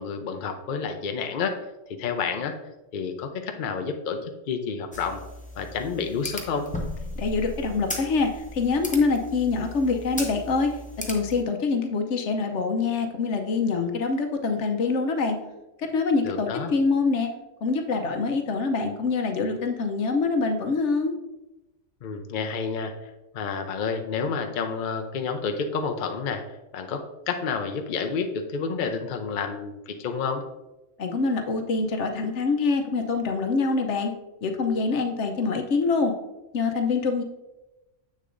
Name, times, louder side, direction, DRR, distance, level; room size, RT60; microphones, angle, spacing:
voice 1, 0.0-1.6 2.0-2.6 2.9-5.2 5.6-6.7 16.2-16.7 22.0-22.9 23.3-26.4 26.7-30.4, left 5 dB, 50° left, 5 dB, 0.7 m, -29 dB
sound 1, 4.9-11.4, left 1 dB, 10° left, 0.6 m, -37 dB
voice 2, 7.2-10.8 11.1-15.4 15.8-17.3 17.6-21.1 31.0-34.1 34.4-36.1 36.5-37.2, left 4 dB, 70° left, 5 dB, 1.0 m, -25 dB
7.6 x 6.5 x 2.5 m, 1.0 s
omnidirectional pair, 1.3 m